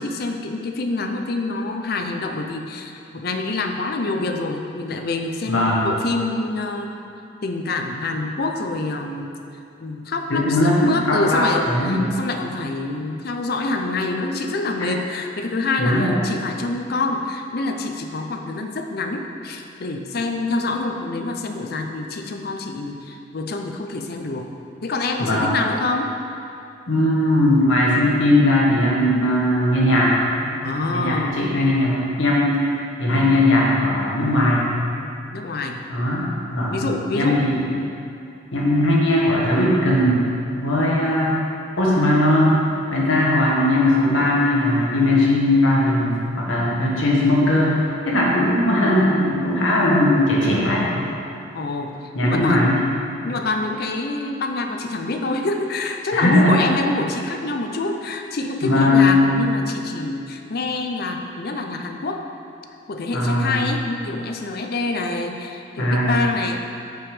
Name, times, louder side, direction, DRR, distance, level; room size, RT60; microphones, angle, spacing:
voice 1, 0.0-7.0 7.4-9.4 9.8-24.5 24.8-26.1 30.6-31.3 35.3-35.8 36.7-37.4 51.5-52.8 53.2-62.2 62.9-66.6, left 2 dB, 50° left, 4 dB, 0.5 m, -26 dB
voice 2, 5.4-5.8 10.3-12.0 15.8-16.1 25.2-25.5 26.9-30.2 30.4-30.5 30.9-34.7 35.9-36.7 37.1-37.8 38.5-40.2 40.6-41.4 41.8-42.6 42.9-47.8 48.0-51.0 52.1-52.8 56.1-56.6 58.6-59.2 63.1-63.5 65.8-66.2, left 1 dB, 80° left, -4 dB, 1.5 m, -19 dB
6.1 x 5.2 x 4.9 m, 2.6 s
head